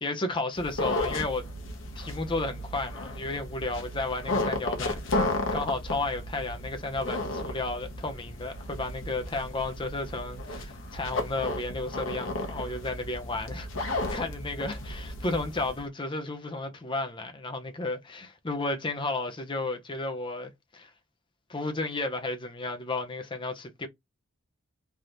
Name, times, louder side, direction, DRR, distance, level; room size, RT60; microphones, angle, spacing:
voice 1, 0.0-1.5 2.0-5.2 5.5-20.9 21.5-23.9, left 2 dB, 25° left, 0.5 m, -33 dB
sound 1, 0.5-15.8, left 2 dB, 65° left, 0.9 m, -34 dB
3.4 x 2.9 x 2.5 m
head